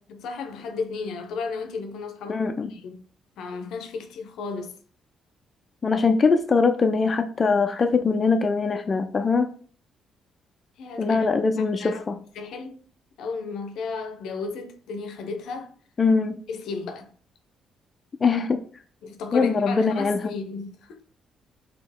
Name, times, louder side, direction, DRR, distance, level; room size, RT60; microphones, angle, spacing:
voice 1, 0.1-3.0 3.4-4.8 10.8-11.3 11.6-12.0 12.4-12.8 13.2-15.7 16.5-17.1 19.0-21.0, left 4 dB, 80° left, 0.6 m, -34 dB
voice 2, 2.3-2.7 5.8-9.5 11.0-12.2 16.0-16.4 18.2-18.6 19.3-20.3, left 4 dB, 35° left, 0.4 m, -22 dB
4.2 x 2.9 x 3.5 m
cardioid pair, 90°, 0 cm